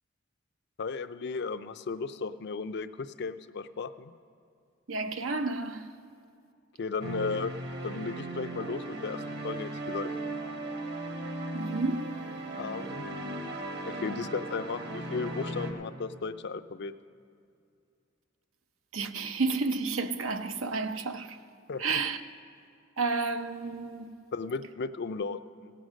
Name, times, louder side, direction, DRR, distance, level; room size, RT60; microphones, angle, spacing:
voice 1, 0.8-4.1 6.8-7.5 7.8-10.1 12.6-13.1 13.8-16.9 21.7-21.8 24.3-25.7, left 4 dB, 60° left, 0.5 m, -35 dB
voice 2, 4.9-5.9 11.5-12.2 18.9-21.4 21.8-22.2 23.0-24.1, right 3 dB, 85° right, 0.7 m, -31 dB
sound 1, 7.0-15.7, right 2 dB, 55° right, 1.4 m, -37 dB
16.5 x 7.8 x 6.3 m
head